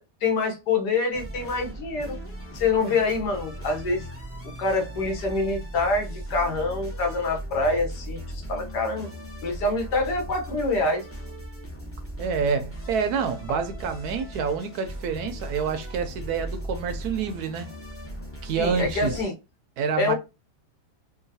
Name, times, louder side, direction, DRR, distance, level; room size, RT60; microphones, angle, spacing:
voice 1, 0.2-2.2 2.5-4.0 4.4-9.1 9.4-11.0 18.6-19.3 20.0-20.1, left 3 dB, 75° left, 1.5 m, -26 dB
sound 1, 1.1-19.2, equal, 20° left, 0.4 m, -38 dB
voice 2, 12.2-17.7 18.4-19.2 19.8-20.1, right 6 dB, 75° right, 1.0 m, -27 dB
3.8 x 2.2 x 2.6 m
omnidirectional pair, 1.8 m